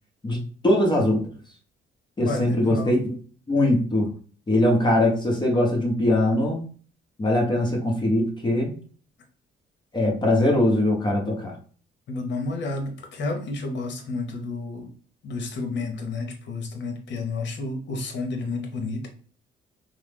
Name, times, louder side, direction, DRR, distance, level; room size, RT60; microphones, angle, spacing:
voice 1, 0.2-1.2 2.2-3.2 3.5-4.1 4.5-6.6 7.2-8.7 9.9-11.5, left 1 dB, 20° left, 0 dB, 0.9 m, -21 dB
voice 2, 2.2-2.9 12.1-14.9 15.2-19.1, left 3 dB, 65° left, 3 dB, 0.9 m, -31 dB
3.1 x 2.0 x 3.4 m, 0.43 s
cardioid pair, 90°, 20 cm